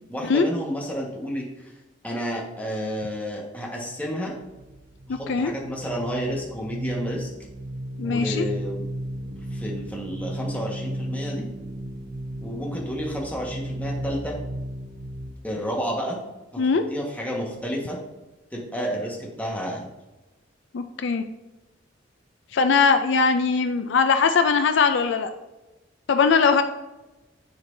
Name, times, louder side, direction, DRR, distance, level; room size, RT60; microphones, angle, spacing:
voice 1, 0.1-1.7 2.0-4.3 5.1-7.3 8.0-8.8 9.3-11.5 12.4-14.4 15.4-16.2 16.5-16.6 16.9-18.0 18.5-19.9, equal, 10° left, -3 dB, 1.5 m, -31 dB
sound 1, 4.3-15.4, right 1 dB, 45° right, 0.6 m, -34 dB
voice 2, 5.1-5.5 8.0-8.5 16.6-16.8 20.7-21.2 22.5-25.3 26.1-26.6, left 5 dB, 70° left, 8 dB, 0.4 m, -20 dB
10.0 x 4.4 x 2.7 m, 1.1 s
head